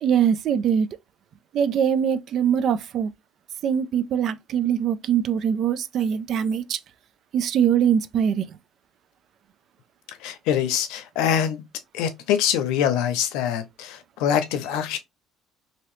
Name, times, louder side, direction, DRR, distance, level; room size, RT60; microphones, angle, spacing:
voice 1, 0.0-0.9 1.5-3.1 3.6-6.8 7.3-8.5, right 8 dB, 55° right, 0.4 m, -22 dB
voice 2, 10.1-11.6 11.9-15.0, left 9 dB, 85° left, 0.6 m, -24 dB
2.8 x 2.8 x 3.1 m
cardioid pair, 115°, 0 cm